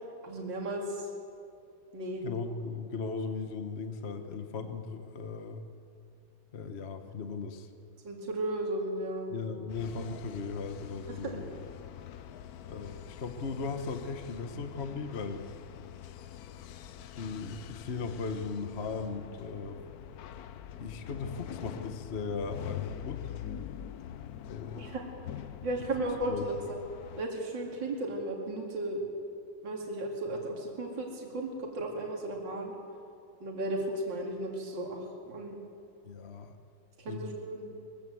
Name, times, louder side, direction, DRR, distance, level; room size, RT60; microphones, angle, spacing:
voice 1, 0.2-1.1 1.9-2.2 8.0-9.3 11.2-11.4 24.7-25.0 25.6-26.8 27.2-29.0 29.6-32.7 33.4-35.6 37.0-37.7, right 1 dB, 65° right, 0 dB, 3.1 m, -35 dB
voice 2, 2.2-5.6 6.5-7.7 9.3-11.5 12.7-15.5 17.2-19.8 20.8-23.3 24.5-24.8 26.3-26.7 36.0-36.5 37.1-37.3, left 4 dB, 40° left, 7 dB, 1.2 m, -37 dB
sound 1, 9.7-27.3, left 10 dB, 65° left, 1.0 m, -44 dB
22.0 x 15.5 x 7.8 m, 2.5 s
omnidirectional pair, 2.2 m